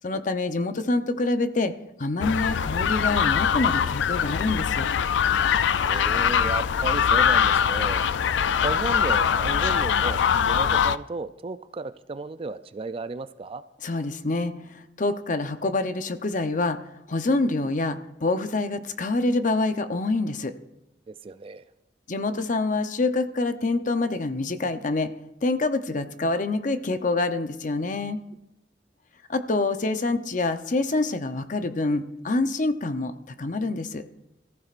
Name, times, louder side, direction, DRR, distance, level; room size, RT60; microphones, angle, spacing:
voice 1, 0.0-1.7 2.0-4.9 13.8-16.8 17.1-20.5 22.1-25.1 25.4-28.2 29.3-33.1 33.4-34.0, left 2 dB, 45° left, 9 dB, 0.7 m, -26 dB
sound 1, 2.2-11.0, left 7 dB, 85° left, 0.4 m, -22 dB
voice 2, 5.9-8.0 8.6-13.6 21.1-21.6, right 3 dB, 30° right, 13 dB, 0.4 m, -34 dB
22.0 x 14.5 x 2.5 m, 0.90 s
head